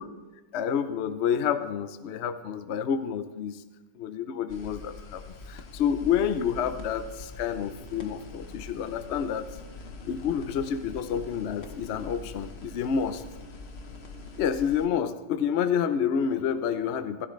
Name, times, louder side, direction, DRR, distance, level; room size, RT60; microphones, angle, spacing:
voice 1, 0.5-3.6 4.0-9.5 10.1-13.2 14.4-17.3, left 8 dB, 75° left, 10 dB, 0.6 m, -29 dB
sound 1, 4.5-14.9, left 3 dB, 45° left, 1.0 m, -43 dB
15.0 x 13.0 x 3.2 m, 1.2 s
omnidirectional pair, 2.0 m